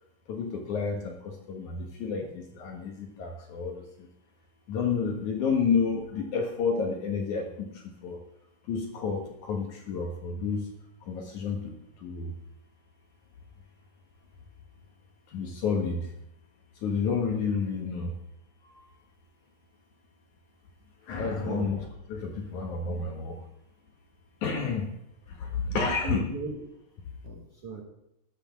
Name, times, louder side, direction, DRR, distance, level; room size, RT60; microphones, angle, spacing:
voice 1, 0.3-3.8 4.7-8.2 8.7-10.7 11.1-11.7 12.0-12.3 15.3-16.1 16.8-18.1 18.7-18.8 21.1-21.8 22.1-23.4 24.4-24.9 25.4-26.3, left 5 dB, 60° left, 2 dB, 2.3 m, -30 dB
voice 2, 21.4-21.7 25.7-26.6 27.2-27.8, right 4 dB, 55° right, 0 dB, 1.8 m, -37 dB
12.5 x 8.2 x 7.4 m, 0.82 s
omnidirectional pair, 4.6 m